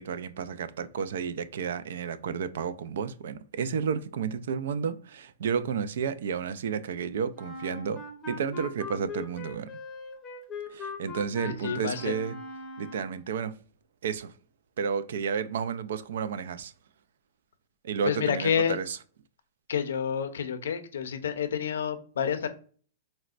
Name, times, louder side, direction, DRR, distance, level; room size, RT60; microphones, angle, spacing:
voice 1, 0.0-9.7 10.7-12.4 12.8-13.6 14.0-14.3 14.8-16.7 17.8-19.0, right 6 dB, 75° right, 0.3 m, -31 dB
Wind instrument woodwind instrument, 7.3-13.3, left 4 dB, 15° left, 0.6 m, -40 dB
voice 2, 11.4-12.2 18.0-18.8 19.7-22.5, left 7 dB, 85° left, 0.5 m, -29 dB
4.1 x 2.1 x 2.4 m
hypercardioid pair, 155°, 0 cm